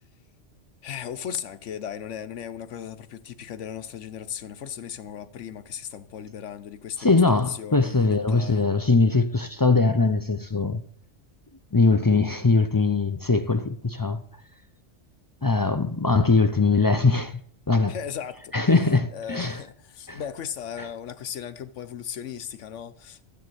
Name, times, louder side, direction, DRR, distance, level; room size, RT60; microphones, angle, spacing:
voice 1, 0.8-8.6 17.9-18.5 19.1-23.3, left 9 dB, 90° left, 1.1 m, -36 dB
voice 2, 7.0-10.8 11.7-14.2 15.4-17.4 17.7-17.9 18.5-19.6 20.1-20.2, left 3 dB, 30° left, 0.3 m, -21 dB
13.5 x 6.9 x 7.9 m
omnidirectional pair, 1.2 m